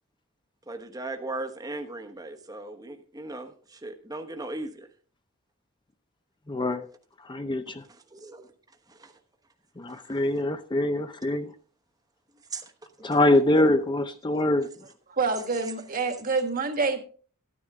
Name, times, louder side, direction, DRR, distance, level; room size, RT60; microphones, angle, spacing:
voice 1, 0.7-4.9 8.1-8.5 9.0-9.1 12.5-12.6, right 2 dB, 20° right, 1.1 m, -37 dB
voice 2, 6.5-6.8 7.2-7.8 9.8-11.5 13.0-14.7, left 1 dB, 20° left, 0.6 m, -24 dB
voice 3, 15.2-17.0, right 4 dB, 40° right, 1.6 m, -27 dB
13.5 x 9.9 x 3.6 m
head